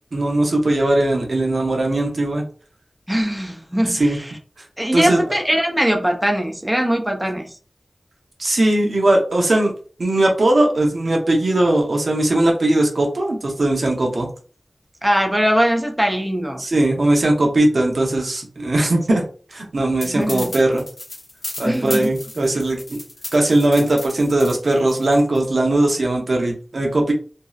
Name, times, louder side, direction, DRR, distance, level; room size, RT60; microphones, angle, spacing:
voice 1, 0.1-2.5 3.9-4.2 4.9-5.2 8.4-9.7 10.0-14.3 16.6-19.2 19.5-20.8 21.6-23.0 23.3-27.1, right 1 dB, 75° right, 1 dB, 0.7 m, -19 dB
voice 2, 3.1-4.3 4.8-7.5 15.0-16.7 19.1-19.2 20.0-20.6 21.6-22.1, equal, 10° right, 2 dB, 0.5 m, -21 dB
sound 1, 20.0-25.4, left 2 dB, 55° left, 0.7 m, -34 dB
2.6 x 2.0 x 2.3 m, 0.39 s
wide cardioid pair, 80°, 0 cm